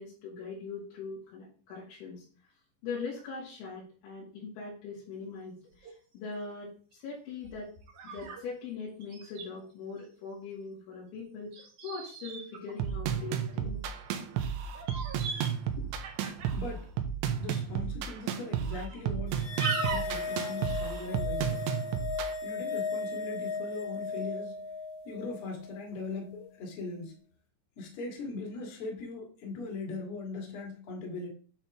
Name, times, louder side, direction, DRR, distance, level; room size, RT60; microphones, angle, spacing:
voice 1, 0.0-2.3 2.8-7.7 8.0-11.5 11.8-13.8 15.8-15.9, left 4 dB, 90° left, -7 dB, 4.6 m, -41 dB
sound 1, 5.1-5.2 5.7-5.9 6.5-6.6 7.4-8.4 8.7-8.8 9.0-9.5 11.5-13.6 14.3-14.5 14.7-15.6 15.8-16.7 17.3-17.5 18.1-18.2 18.7-19.2 19.6-20.2, right 5 dB, 65° right, 2.1 m, -39 dB
sound 2, 12.8-22.3, right 8 dB, 85° right, 3.1 m, -33 dB
voice 2, 16.5-16.9 17.4-19.4 19.9-21.6 22.4-24.6 25.0-27.2 27.8-31.3, left 3 dB, 50° left, 1 dB, 1.7 m, -40 dB
sound 3, 19.4-26.0, left 4 dB, 70° left, 2.5 m, -36 dB
9.7 x 4.4 x 3.5 m, 0.41 s
omnidirectional pair, 5.2 m